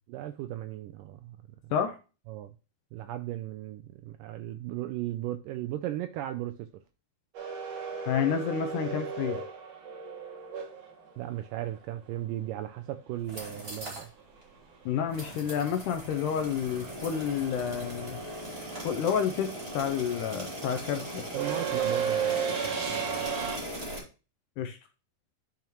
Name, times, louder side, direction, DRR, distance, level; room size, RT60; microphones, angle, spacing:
voice 1, 0.1-1.4 1.6-1.7 2.3-2.5 2.9-6.7 11.2-14.1 21.3-23.5, right 14 dB, 85° right, 1.9 m, -37 dB
sound 1, 7.3-11.4 13.8-13.9 15.2-15.5 15.8-23.6, right 7 dB, 60° right, 3.6 m, -34 dB
voice 2, 8.1-9.4 14.9-18.2 18.8-21.2 24.6-24.8, left 8 dB, 80° left, 1.9 m, -30 dB
sound 2, 13.2-14.1 14.4-14.5 15.1-24.0, equal, 20° right, 2.0 m, -39 dB
10.5 x 5.8 x 3.0 m
omnidirectional pair, 4.3 m